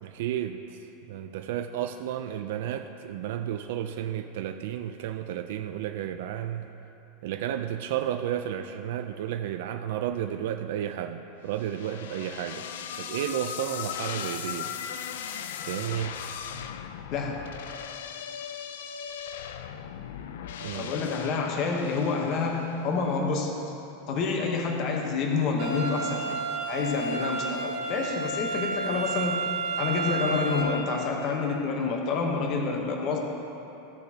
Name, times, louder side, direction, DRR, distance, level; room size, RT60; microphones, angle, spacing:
voice 1, 0.0-6.7 7.2-12.7 13.0-14.7 15.7-16.2 20.6-21.1, right 10 dB, 60° right, 6 dB, 0.4 m, -32 dB
sound 1, 11.6-22.9, left 8 dB, 85° left, 0.5 m, -38 dB
voice 2, 17.1-17.5 20.7-23.6 24.1-26.3 26.7-29.4 29.8-33.2, left 4 dB, 35° left, 1 dB, 0.9 m, -28 dB
sound 2, 25.6-30.6, right 3 dB, 30° right, 1.7 m, -31 dB
15.5 x 6.7 x 2.8 m, 3.0 s
supercardioid pair, 175°, 0 cm